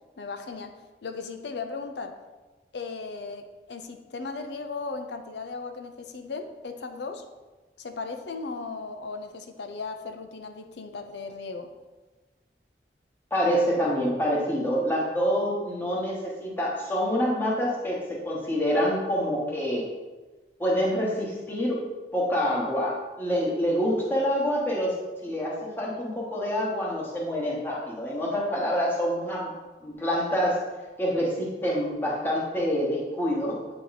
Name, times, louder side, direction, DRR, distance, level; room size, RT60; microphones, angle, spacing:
voice 1, 0.2-0.7 1.0-2.2 2.7-7.2 7.8-11.7, left 4 dB, 70° left, 7 dB, 0.5 m, -36 dB
voice 2, 13.3-19.9 20.6-24.9 25.2-29.5 29.8-30.7 31.0-33.6, equal, 10° left, -5 dB, 1.1 m, -26 dB
8.3 x 3.0 x 3.9 m, 1.2 s
head